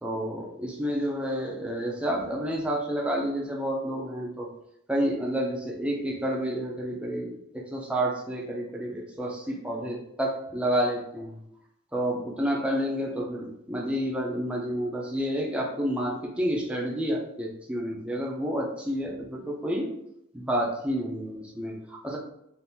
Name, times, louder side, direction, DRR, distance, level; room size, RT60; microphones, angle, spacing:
voice 1, 0.0-4.5 4.9-11.4 11.9-20.0 20.3-22.2, equal, 5° right, -2 dB, 0.4 m, -29 dB
2.7 x 2.5 x 3.5 m, 0.79 s
head